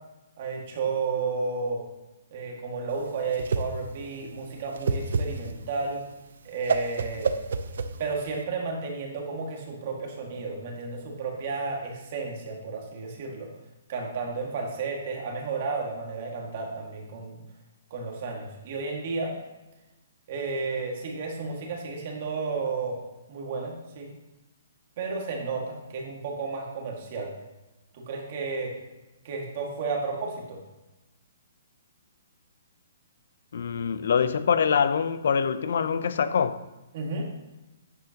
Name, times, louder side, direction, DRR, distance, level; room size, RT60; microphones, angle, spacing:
voice 1, 0.4-1.8 2.3-6.0 6.4-7.3 8.0-13.5 13.9-17.4 17.9-19.3 20.3-23.0 23.3-24.1 25.0-27.3 27.9-28.7 29.2-30.6 36.9-37.2, right 4 dB, 35° right, 1.9 m, -32 dB
Whoosh swoosh swish, 2.9-8.4, right 4 dB, 65° right, 0.7 m, -30 dB
voice 2, 33.5-36.6, left 6 dB, 60° left, 0.6 m, -24 dB
11.0 x 9.3 x 2.9 m
hypercardioid pair, 170°, 0 cm